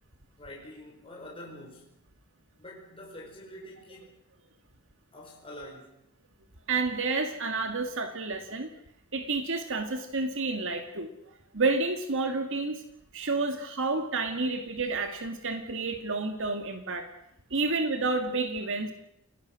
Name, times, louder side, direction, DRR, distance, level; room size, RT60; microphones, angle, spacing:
voice 1, 0.4-1.9 2.6-4.1 5.1-6.0, left 1 dB, 25° left, -2 dB, 5.2 m, -46 dB
voice 2, 6.7-8.7 9.1-11.1 11.5-12.8 13.1-17.1 17.5-18.9, right 3 dB, 65° right, 5 dB, 2.0 m, -30 dB
29.5 x 18.5 x 6.2 m, 0.78 s
head